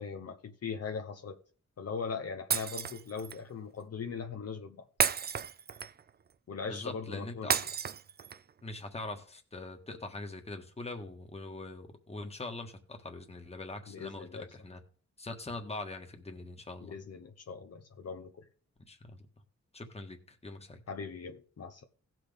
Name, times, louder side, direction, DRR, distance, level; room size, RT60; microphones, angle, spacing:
voice 1, 0.0-1.4 1.8-4.9 6.5-7.6 13.9-14.5 16.8-18.5 20.9-21.8, left 5 dB, 55° left, 0.9 m, -40 dB
Shatter, 2.5-3.4 5.0-6.1 7.5-8.5, right 7 dB, 35° right, 0.4 m, -32 dB
voice 2, 6.7-7.6 8.6-14.8 15.2-16.9 18.9-19.2 19.7-20.8, left 2 dB, 20° left, 1.5 m, -42 dB
17.0 x 6.1 x 3.6 m
wide cardioid pair, 110°, 29 cm